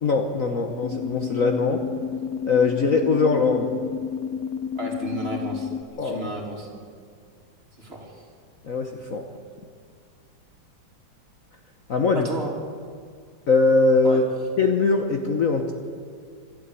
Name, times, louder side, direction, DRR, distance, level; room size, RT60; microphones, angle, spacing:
voice 1, 0.0-1.8 2.4-3.7 6.0-6.3 8.6-9.2 11.9-12.3 13.5-14.2 14.6-15.7, left 4 dB, 45° left, 4 dB, 1.3 m, -21 dB
sound 1, 0.8-5.8, left 7 dB, 65° left, 0.9 m, -30 dB
voice 2, 4.7-5.7 6.0-6.7 7.8-8.2 12.1-12.5 14.0-14.2, right 1 dB, 30° right, 0 dB, 3.4 m, -33 dB
26.0 x 12.0 x 8.4 m, 2.1 s
omnidirectional pair, 2.2 m